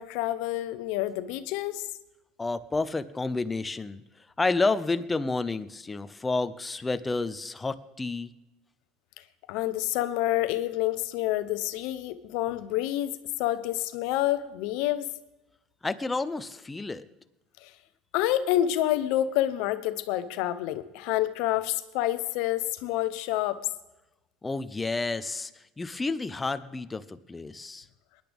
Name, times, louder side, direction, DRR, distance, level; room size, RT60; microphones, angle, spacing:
voice 1, 0.0-1.8 9.5-13.1 13.4-15.1 17.6-17.7 18.1-23.6, left 13 dB, 70° left, 12 dB, 0.8 m, -28 dB
voice 2, 2.4-4.0 4.4-8.3 15.8-17.1 24.4-27.9, left 3 dB, 15° left, 12 dB, 0.7 m, -30 dB
19.5 x 10.5 x 3.6 m, 0.97 s
supercardioid pair, 110°, 0 cm